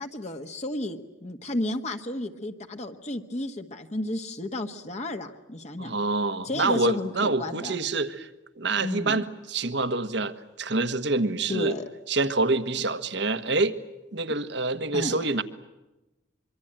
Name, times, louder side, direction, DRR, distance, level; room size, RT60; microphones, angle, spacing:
voice 1, 0.0-5.9 6.4-7.8 8.8-9.2 11.5-11.9 14.9-15.2, left 1 dB, 35° left, 5 dB, 1.4 m, -32 dB
voice 2, 5.8-8.3 8.6-11.8 12.1-13.7 14.1-15.4, right 3 dB, 65° right, 12 dB, 1.4 m, -26 dB
25.5 x 24.0 x 8.9 m, 1.0 s
head